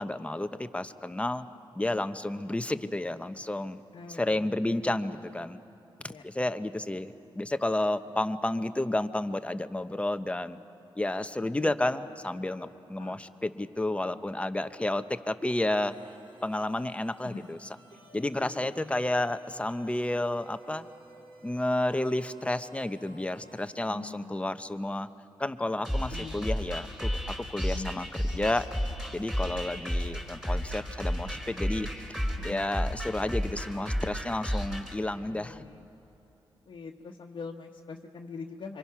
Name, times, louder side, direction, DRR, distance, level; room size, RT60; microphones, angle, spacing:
voice 1, 0.0-1.5 1.7-3.8 4.1-5.6 6.0-10.6 11.0-15.9 16.4-17.6 18.1-20.9 21.4-25.1 25.4-27.1 27.5-28.1 28.3-28.6 29.1-32.2 32.4-35.6, left 1 dB, 15° left, 10 dB, 0.9 m, -31 dB
voice 2, 3.9-4.7 6.1-6.5 7.0-7.1 13.0-13.2 17.2-17.5 18.4-19.0 23.9-24.5 26.1-26.3 27.7-28.0 32.3-32.6 35.3-35.9 36.6-38.8, left 4 dB, 60° left, -1 dB, 1.3 m, -43 dB
sound 1, 15.9-23.9, right 2 dB, 75° right, 5.6 m, -56 dB
sound 2, 25.8-35.0, equal, 5° right, 4.4 m, -32 dB
26.0 x 25.0 x 5.9 m, 2.8 s
cardioid pair, 75°, 9 cm